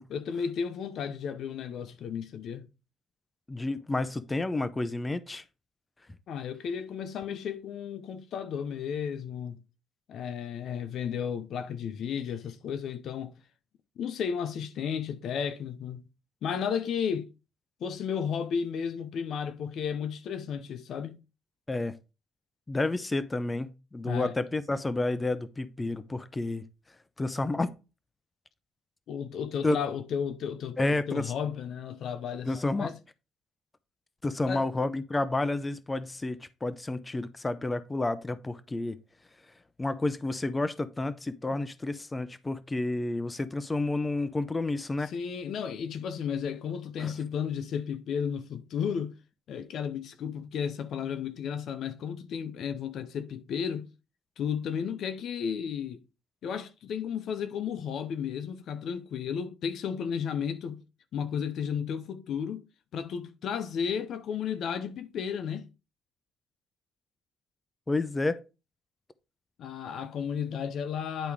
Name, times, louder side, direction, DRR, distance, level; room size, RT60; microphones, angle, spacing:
voice 1, 0.1-2.7 6.3-9.6 10.1-13.4 14.0-16.0 16.4-17.3 17.8-21.2 24.0-24.3 29.1-32.9 34.5-34.7 41.5-41.6 45.0-49.1 49.5-53.9 54.4-56.0 56.4-60.8 61.1-62.6 62.9-65.7 69.6-71.3, left 7 dB, 70° left, 0.9 m, -33 dB
voice 2, 3.5-5.4 21.7-22.0 22.7-26.6 27.2-27.7 29.6-29.8 30.8-31.3 32.5-32.9 34.2-39.0 39.8-45.1 47.0-47.1 67.9-68.4, left 2 dB, 20° left, 0.7 m, -30 dB
10.5 x 3.5 x 4.9 m
cardioid pair, 90°, 0 cm